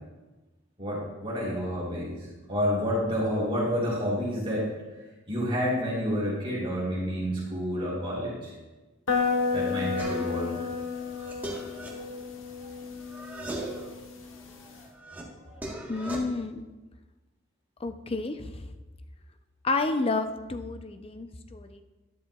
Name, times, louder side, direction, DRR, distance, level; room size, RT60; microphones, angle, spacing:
voice 1, 0.8-4.7 5.3-8.5 9.5-10.6, equal, 30° right, -7 dB, 3.4 m, -29 dB
sound 1, 9.1-14.8, left 5 dB, 75° left, 1.2 m, -32 dB
sound 2, 10.0-10.5 10.9-12.8 13.1-13.9 14.4-16.2, right 2 dB, 10° right, 1.3 m, -39 dB
voice 2, 15.9-16.7 17.8-18.7 19.6-21.8, left 3 dB, 30° left, 8 dB, 0.5 m, -30 dB
12.0 x 11.0 x 2.4 m, 1.2 s
head